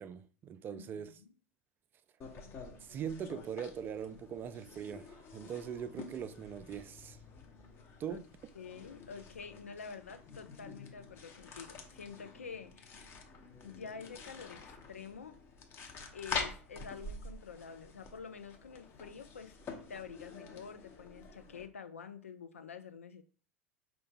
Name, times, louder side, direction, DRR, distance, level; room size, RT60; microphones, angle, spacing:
voice 1, 0.0-1.1 2.8-7.2 8.0-8.3, right 8 dB, 30° right, 0.3 m, -41 dB
voice 2, 0.7-1.3 8.1-8.2 8.6-13.1 13.6-15.4 16.1-19.5 19.9-23.2, left 6 dB, 80° left, 0.4 m, -48 dB
sound 1, 2.2-21.7, left 4 dB, 35° left, 0.8 m, -47 dB
4.6 x 2.6 x 3.4 m
figure-of-eight pair, 85°, 7 cm